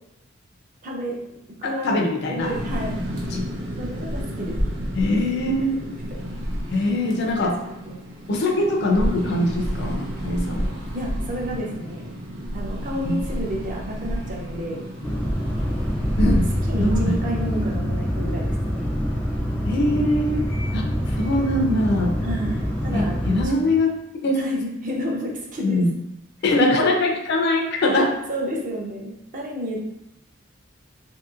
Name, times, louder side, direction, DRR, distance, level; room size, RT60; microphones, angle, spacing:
voice 1, 0.8-1.2 1.6-2.0 2.3-3.0 3.7-4.6 6.7-6.9 7.7-8.0 10.9-12.1 12.5-14.9 16.2-16.4 16.7-18.9 22.2-23.6 24.3-25.8 27.9-29.9, equal, 40° right, -2 dB, 0.6 m, -30 dB
voice 2, 1.6-2.5 3.3-3.4 5.0-5.7 6.7-7.5 8.3-10.8 13.0-13.2 16.2-16.4 16.8-17.1 19.7-20.5 20.7-20.9 21.2-22.1 22.9-23.9 24.2-24.4 25.6-25.9 26.4-28.1, left 1 dB, 55° left, 1 dB, 0.5 m, -22 dB
sound 1, 2.4-17.8, equal, 85° right, 0.7 m, -30 dB
sound 2, 15.0-23.5, equal, 5° left, 0.5 m, -26 dB
sound 3, 16.0-23.8, equal, 90° left, 0.9 m, -37 dB
2.9 x 2.7 x 2.4 m, 0.86 s
head